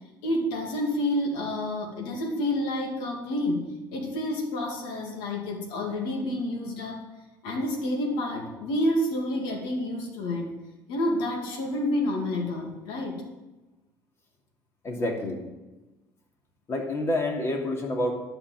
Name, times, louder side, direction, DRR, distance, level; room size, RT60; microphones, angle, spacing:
voice 1, 0.2-3.6 3.9-7.0 7.4-10.5 10.9-13.2, left 1 dB, 85° left, 0 dB, 2.4 m, -29 dB
voice 2, 14.8-15.4 16.7-18.1, left 1 dB, 35° left, 0 dB, 2.9 m, -28 dB
11.5 x 5.8 x 8.8 m, 1.1 s
cardioid pair, 110°, 8 cm